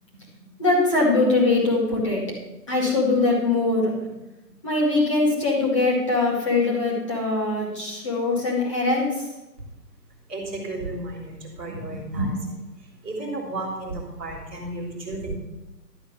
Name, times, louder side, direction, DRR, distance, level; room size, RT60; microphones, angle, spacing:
voice 1, 0.3-2.2 2.7-4.2 4.6-9.3 11.7-12.3, left 2 dB, 20° left, -4 dB, 2.2 m, -22 dB
voice 2, 10.3-12.4 12.8-15.4, right 2 dB, 10° right, -10 dB, 1.7 m, -33 dB
12.0 x 4.8 x 8.2 m, 0.99 s
figure-of-eight pair, 170°, 49 cm